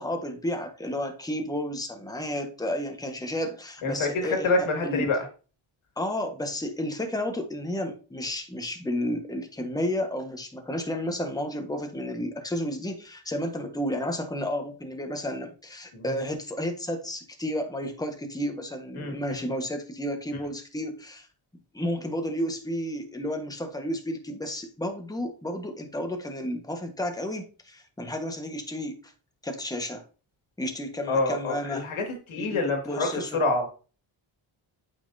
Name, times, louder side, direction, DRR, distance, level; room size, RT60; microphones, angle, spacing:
voice 1, 0.0-5.1 6.0-21.3 21.7-29.0 29.4-30.0 30.6-31.9 32.4-33.4, left 1 dB, 10° left, 5 dB, 1.2 m, -32 dB
voice 2, 3.8-5.2 15.9-16.0 19.0-19.2 31.1-33.7, left 3 dB, 75° left, 3 dB, 2.1 m, -27 dB
8.5 x 5.5 x 2.7 m, 0.36 s
cardioid pair, 100°, 49 cm